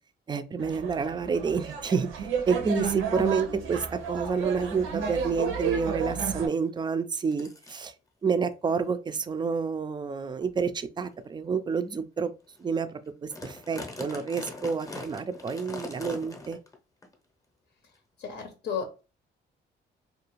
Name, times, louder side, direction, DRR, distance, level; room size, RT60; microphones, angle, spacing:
voice 1, 0.3-7.9 8.2-12.3 12.6-16.6, right 5 dB, 20° right, 0.3 m, -29 dB
sound 1, 0.6-6.5, right 7 dB, 85° right, 0.6 m, -32 dB
sound 2, 3.5-3.6 4.0-4.2 4.8-4.9 5.2-5.5 6.6-6.7 7.3-7.9 8.6-8.8 9.4-9.6 10.2-10.3 11.0-11.2 11.7-11.8 12.2-12.3 12.5-12.8 13.1-16.7 17.0-17.1 17.9-18.0, left 2 dB, 15° left, 0.7 m, -42 dB
voice 2, 18.2-19.0, left 6 dB, 65° left, 0.7 m, -34 dB
2.5 x 2.3 x 3.0 m
cardioid pair, 90°, 20 cm